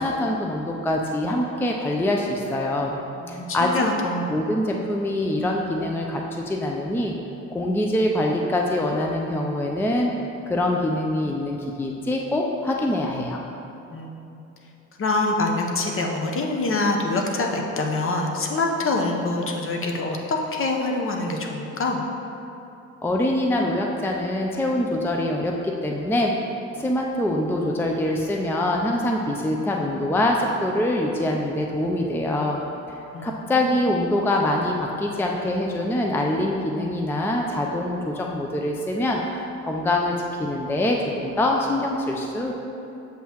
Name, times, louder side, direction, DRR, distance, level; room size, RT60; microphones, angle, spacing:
voice 1, 0.0-3.0 3.3-3.7 4.3-7.1 7.5-10.1 10.5-13.4 23.0-26.3 26.8-32.6 32.9-42.5, left 1 dB, 5° left, 0 dB, 0.4 m, -24 dB
voice 2, 3.2-4.4 13.9-14.4 15.0-22.0 33.1-33.8, left 2 dB, 45° left, 1 dB, 0.8 m, -25 dB
7.3 x 5.4 x 2.9 m, 2.9 s
cardioid pair, 90°, 30 cm